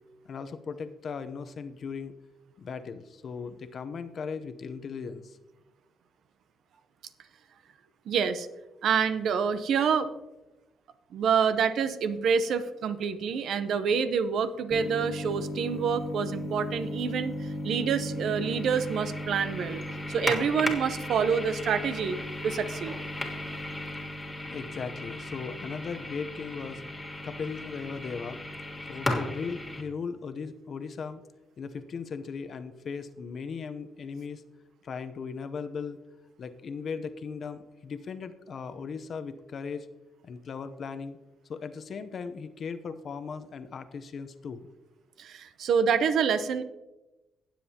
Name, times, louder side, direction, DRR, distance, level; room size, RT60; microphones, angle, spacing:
voice 1, 0.2-2.1 2.6-5.4 24.5-26.8 27.2-28.4 28.9-31.2 31.6-34.4 34.8-36.0 36.4-39.9 40.2-41.2 41.5-44.7, left 5 dB, 55° left, 10 dB, 0.7 m, -37 dB
voice 2, 8.1-8.5 8.8-10.1 11.1-19.8 20.1-22.2 22.4-23.0 45.2-46.6, right 6 dB, 70° right, 12 dB, 0.7 m, -27 dB
sound 1, 14.7-29.8, left 1 dB, 15° left, 1.6 m, -35 dB
17.0 x 7.5 x 2.8 m, 1.0 s
cardioid pair, 90°, 0 cm